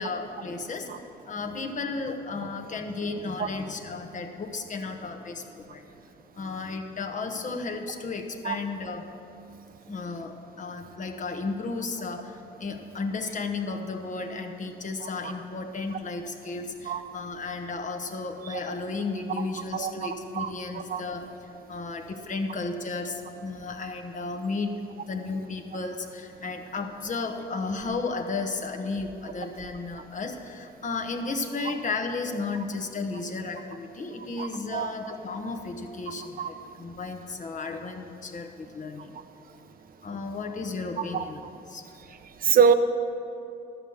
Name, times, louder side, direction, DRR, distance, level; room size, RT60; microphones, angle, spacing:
voice 1, 0.0-5.8 6.4-9.1 9.9-21.2 21.7-24.7 25.1-39.1 40.0-41.8, left 3 dB, 40° left, 4 dB, 1.1 m, -34 dB
voice 2, 42.4-42.7, right 7 dB, 45° right, 10 dB, 0.7 m, -21 dB
12.5 x 6.4 x 6.9 m, 2.6 s
cardioid pair, 90°, 20 cm